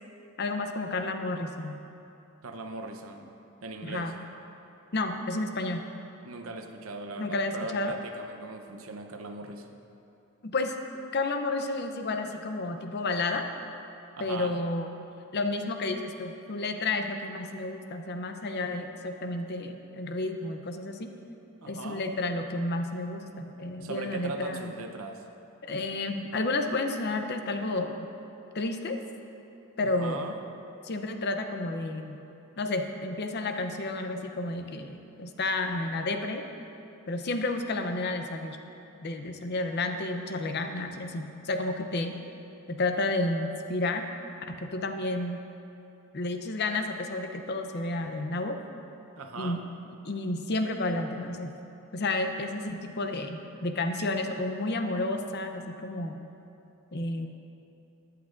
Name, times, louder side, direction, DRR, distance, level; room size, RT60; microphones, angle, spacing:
voice 1, 0.4-1.8 3.8-4.2 4.9-5.8 7.2-8.0 10.4-10.8 11.1-13.5 14.2-14.9 15.3-21.2 21.7-24.7 25.6-28.1 28.5-29.0 29.8-30.2 30.8-32.2 32.6-36.5 37.1-38.6 39.0-42.2 42.7-44.1 44.5-45.4 46.1-48.6 49.4-49.6 50.0-51.5 51.9-56.2 56.9-57.3, left 2 dB, 50° left, 6 dB, 0.6 m, -31 dB
voice 2, 2.4-3.3 3.6-4.1 6.2-9.8 14.2-14.5 21.6-22.0 23.8-25.2 29.8-30.3 49.2-49.6, right 3 dB, 70° right, 5 dB, 0.8 m, -39 dB
14.5 x 10.5 x 2.5 m, 2.8 s
head